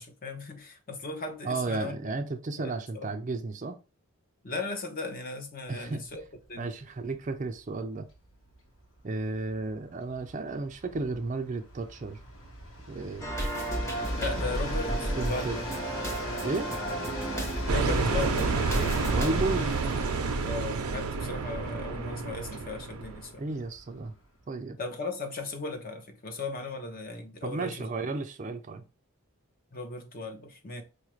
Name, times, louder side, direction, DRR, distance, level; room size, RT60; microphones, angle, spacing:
voice 1, 0.0-2.1 2.6-3.1 4.4-6.2 6.5-6.7 14.2-15.5 17.7-18.6 20.4-23.4 24.8-27.9 29.7-30.8, left 3 dB, 40° left, 0.7 m, -37 dB
voice 2, 1.4-3.8 5.7-6.0 6.6-8.1 9.0-12.2 12.9-13.8 15.2-15.6 16.4-16.8 19.1-19.8 23.4-24.1 24.5-24.8 27.4-28.8, right 3 dB, 35° right, 0.4 m, -33 dB
Train, 6.1-6.3 6.6-6.7 7.0-24.4, equal, 65° left, 1.1 m, -40 dB
sound 1, 13.2-19.3, right 1 dB, 15° left, 0.8 m, -33 dB
sound 2, 17.7-23.2, right 4 dB, 85° right, 0.5 m, -29 dB
4.8 x 2.4 x 3.1 m
head